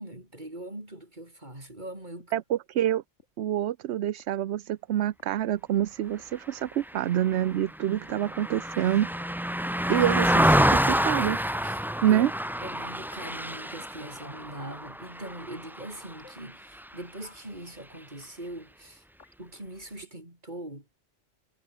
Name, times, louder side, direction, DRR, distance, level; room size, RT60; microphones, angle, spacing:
voice 1, 0.0-2.3 10.0-10.1 11.6-11.8 12.1-12.3 12.6-19.0 19.4-20.9, right 1 dB, 40° right, 6.4 m, -41 dB
sound 1, 2.2-2.3 3.2-3.3 4.2-4.3 5.2-5.3 6.2-6.3 7.2-7.3 8.2-8.3 9.2-9.3 10.2-10.3 11.2-11.3 12.2-12.3 13.2-13.4 14.2-14.4 15.2-15.4 16.2-16.4 17.2-17.4 18.2-18.3 19.2-19.4, left 4 dB, 80° left, 2.5 m, -53 dB
voice 2, 2.3-3.0 3.4-9.1 9.9-11.4 12.0-12.3, right 11 dB, 70° right, 0.9 m, -27 dB
Car passing by, 6.8-16.4 16.8-17.0, equal, ahead, 0.5 m, -27 dB
omnidirectional pair, 1.2 m